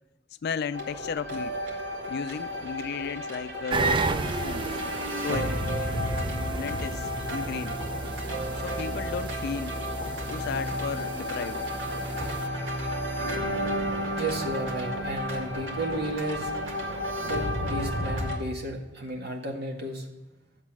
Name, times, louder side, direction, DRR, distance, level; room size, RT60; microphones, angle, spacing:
voice 1, 0.4-1.6 2.1-4.7 5.2-5.6 6.5-7.8 8.6-9.8 10.3-11.6, left 6 dB, 55° left, 0.4 m, -34 dB
sound 1, 0.7-18.4, equal, 80° right, 2.0 m, -32 dB
sound 2, 3.7-12.5, right 4 dB, 25° right, 0.4 m, -34 dB
sound 3, 7.7-16.5 16.8-17.0, equal, 5° left, 1.9 m, -49 dB
voice 2, 14.2-16.9 17.2-20.1, right 1 dB, 60° right, 1.7 m, -33 dB
11.0 x 7.3 x 6.0 m
head